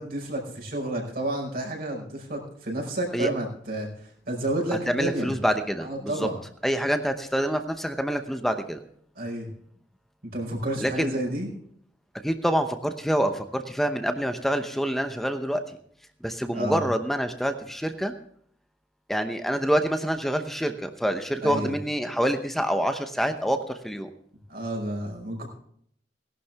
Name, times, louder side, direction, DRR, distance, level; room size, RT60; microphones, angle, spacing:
voice 1, 0.0-5.4 5.8-6.4 9.2-9.5 10.3-11.5 16.5-16.8 21.4-21.8 24.5-25.5, right 1 dB, 60° right, 1 dB, 5.2 m, -30 dB
voice 2, 4.9-6.3 6.6-8.8 10.8-11.2 12.2-15.8 16.2-18.1 19.1-24.1, equal, ahead, 7 dB, 0.8 m, -26 dB
18.0 x 11.5 x 3.5 m, 0.63 s
head